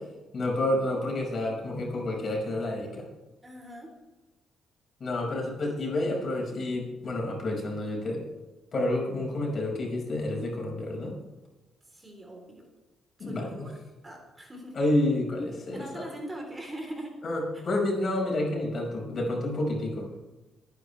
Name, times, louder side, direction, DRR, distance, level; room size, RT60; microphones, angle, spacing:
voice 1, 0.3-3.1 5.0-8.2 8.7-11.1 13.2-13.7 14.7-16.0 17.2-20.3, left 1 dB, 45° left, -1 dB, 5.7 m, -29 dB
voice 2, 3.4-3.9 11.9-12.7 13.2-13.8 14.0-14.8 15.7-17.2 17.5-17.6, right 1 dB, 20° right, 1 dB, 3.8 m, -41 dB
26.0 x 10.0 x 3.4 m, 1.1 s
cardioid pair, 90°, 0 cm